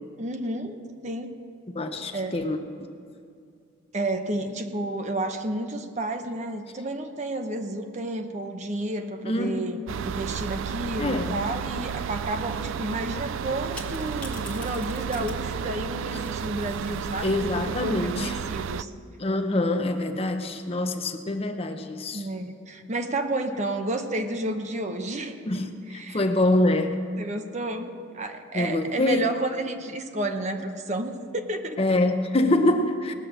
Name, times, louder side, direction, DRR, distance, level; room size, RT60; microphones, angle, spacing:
voice 1, 0.2-1.3 2.1-2.4 3.9-18.9 22.1-25.6 25.9-26.2 27.2-31.8, right 1 dB, 35° right, 6 dB, 0.8 m, -31 dB
voice 2, 1.7-2.6 9.2-10.0 11.0-11.4 17.2-18.4 19.2-22.3 25.5-27.0 28.5-29.3 31.8-33.1, left 1 dB, 30° left, 6 dB, 0.7 m, -25 dB
sound 1, 9.9-18.8, right 7 dB, 75° right, 0.3 m, -32 dB
sound 2, 10.5-11.0 11.8-12.3 12.5-12.8 13.7-17.7 19.3-19.8, left 2 dB, 5° left, 1.3 m, -46 dB
18.5 x 6.5 x 7.5 m, 2.4 s
head